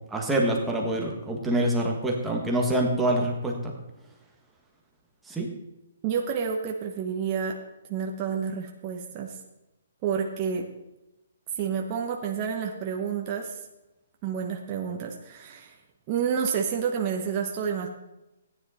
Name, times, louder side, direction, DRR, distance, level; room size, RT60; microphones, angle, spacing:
voice 1, 0.1-3.7 5.3-5.5, right 1 dB, 5° right, -1 dB, 1.5 m, -26 dB
voice 2, 6.0-7.6 7.9-9.4 10.0-10.7 11.6-13.6 14.2-15.7 16.1-17.9, right 7 dB, 25° right, 0 dB, 1.0 m, -29 dB
14.0 x 9.9 x 4.3 m, 0.96 s
hypercardioid pair, 165°, 0 cm